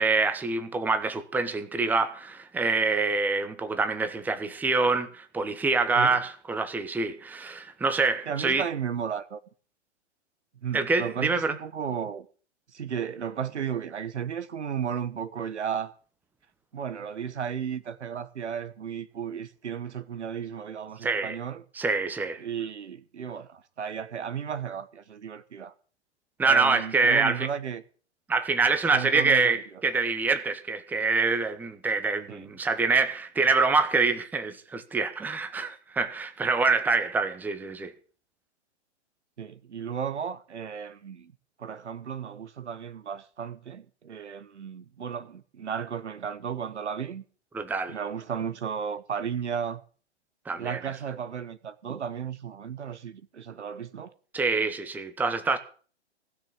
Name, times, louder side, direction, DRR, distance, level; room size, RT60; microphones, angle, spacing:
voice 1, 0.0-8.6 10.7-11.5 21.0-21.4 21.7-22.4 26.4-27.5 28.3-37.9 47.5-48.0 50.5-50.8 54.3-55.6, right 4 dB, 5° right, 1.0 m, -25 dB
voice 2, 8.3-9.4 10.6-12.3 12.7-15.9 16.7-21.6 22.4-25.7 26.4-27.8 28.9-29.5 32.3-32.5 39.4-41.3 41.6-47.2 47.9-49.8 50.6-54.1, right 7 dB, 75° right, 1.4 m, -34 dB
16.0 x 6.3 x 8.7 m
figure-of-eight pair, 125°, 35 cm